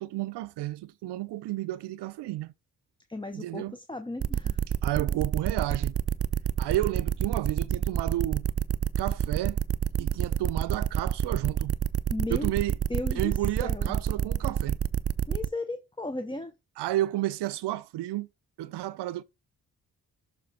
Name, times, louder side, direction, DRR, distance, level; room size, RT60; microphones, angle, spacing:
voice 1, 0.0-2.5 3.3-3.8 4.8-6.0 6.6-8.5 9.0-9.6 10.0-11.7 12.3-12.7 13.1-14.8 16.8-18.3 18.6-19.2, right 15 dB, 80° right, 0.6 m, -31 dB
voice 2, 3.1-4.6 12.1-12.5 12.9-13.9 15.3-16.5, left 2 dB, 10° left, 0.7 m, -35 dB
sound 1, 4.2-15.5, right 9 dB, 35° right, 0.6 m, -27 dB
6.7 x 3.4 x 4.6 m
supercardioid pair, 50°, 40 cm